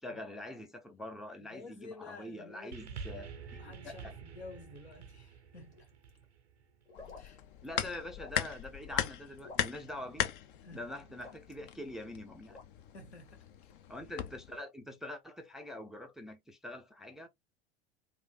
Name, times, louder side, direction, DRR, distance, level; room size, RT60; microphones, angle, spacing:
voice 1, 0.0-4.1 7.6-10.2 10.7-12.6 13.9-17.3, left 1 dB, ahead, 0.3 m, -44 dB
voice 2, 1.4-3.1 3.6-5.9 7.2-7.4 10.6-10.9 12.9-13.5, left 3 dB, 80° left, 0.9 m, -51 dB
sound 1, 2.7-7.3 8.1-8.2, right 5 dB, 85° right, 0.5 m, -48 dB
sound 2, 5.5-6.2 6.9-7.3 7.6-7.7 8.2-9.1 9.4-9.9 10.9-11.6 12.5-12.6, left 3 dB, 25° left, 1.1 m, -52 dB
sound 3, 6.9-14.6, left 10 dB, 50° left, 0.5 m, -39 dB
3.1 x 2.5 x 2.3 m
figure-of-eight pair, 80°, 33 cm